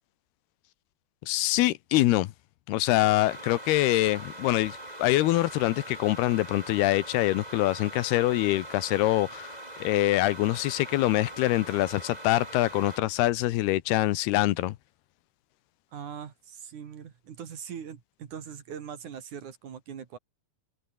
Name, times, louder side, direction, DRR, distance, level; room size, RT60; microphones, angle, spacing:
voice 1, 1.3-2.3 2.7-9.5 9.8-14.8, left 16 dB, 80° left, 2.9 m, -25 dB
sound 1, 3.2-13.0, right 1 dB, 10° right, 5.2 m, -42 dB
voice 2, 15.9-20.2, right 8 dB, 55° right, 3.4 m, -41 dB
omnidirectional pair, 4.6 m